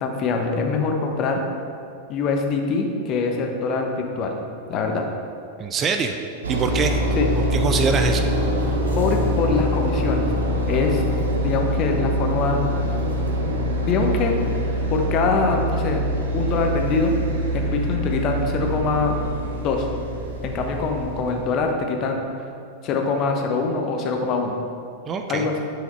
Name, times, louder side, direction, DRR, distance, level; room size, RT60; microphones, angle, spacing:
voice 1, 0.0-1.4 2.1-4.4 4.7-5.0 7.2-7.3 9.0-10.3 10.7-11.0 11.4-12.9 13.9-14.3 14.9-16.0 16.3-17.1 17.5-19.1 19.6-19.9 20.4-22.3 22.8-24.6 25.3-25.6, left 4 dB, 35° left, 3 dB, 1.1 m, -23 dB
voice 2, 5.6-6.2 6.5-7.0 7.5-8.3 25.1-25.5, right 5 dB, 25° right, 6 dB, 0.6 m, -23 dB
sound 1, 6.4-21.5, equal, 70° right, 1.4 m, -24 dB
9.9 x 6.2 x 4.6 m, 2.5 s
figure-of-eight pair, 90°, 0 cm